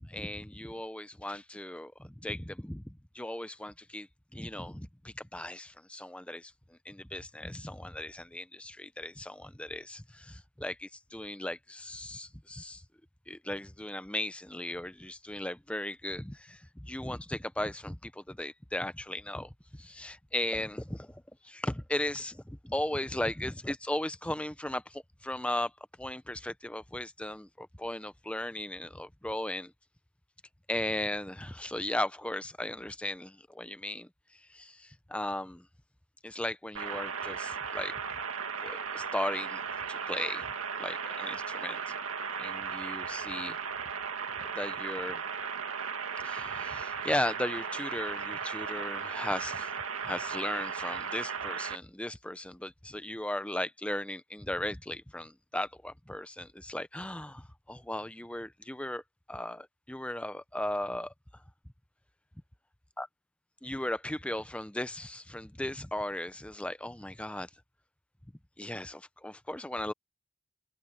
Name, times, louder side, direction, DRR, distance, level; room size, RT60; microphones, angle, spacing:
voice 1, 0.0-4.1 4.3-6.5 6.8-12.8 13.3-19.5 19.8-25.7 26.0-29.7 30.7-34.1 34.5-35.6 36.2-37.9 38.6-39.6 39.9-40.5 40.8-41.9 42.4-43.6 44.4-45.2 46.2-49.7 50.0-59.0 59.3-61.1 63.0-63.1 63.6-67.5 68.6-69.9, left 1 dB, 5° left, 0.6 m, -37 dB
sound 1, 36.8-51.8, right 6 dB, 75° right, 2.1 m, -36 dB
head